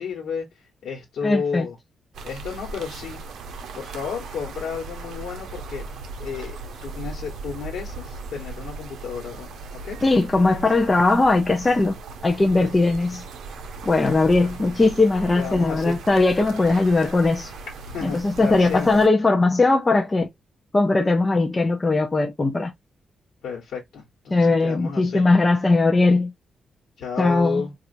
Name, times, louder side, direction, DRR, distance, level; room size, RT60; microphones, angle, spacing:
voice 1, 0.0-1.8 2.2-3.2 3.7-5.8 6.2-10.0 12.6-12.7 14.4-14.7 15.4-16.0 17.8-19.0 23.4-25.2 27.0-27.7, left 6 dB, 75° left, 1.2 m, -32 dB
voice 2, 1.2-1.7 10.0-12.0 12.2-13.2 13.9-17.5 18.0-20.3 20.7-22.7 24.3-26.3 27.2-27.6, left 3 dB, 15° left, 0.4 m, -19 dB
sound 1, 2.1-19.1, right 3 dB, 85° right, 0.6 m, -38 dB
4.3 x 2.4 x 2.5 m
wide cardioid pair, 180°, 0 cm